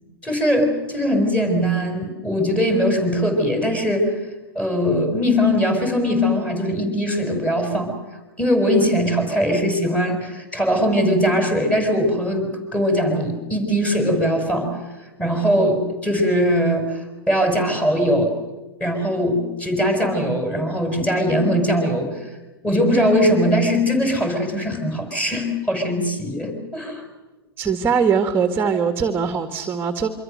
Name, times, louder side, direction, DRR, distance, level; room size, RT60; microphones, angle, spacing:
voice 1, 0.2-4.1 4.6-7.9 8.4-14.8 15.2-18.3 18.8-22.3 22.6-27.0, equal, 10° left, 4 dB, 5.5 m, -21 dB
voice 2, 27.6-30.1, right 6 dB, 15° right, 7 dB, 1.9 m, -21 dB
27.0 x 24.5 x 6.7 m, 1.2 s
hypercardioid pair, 115°, 13 cm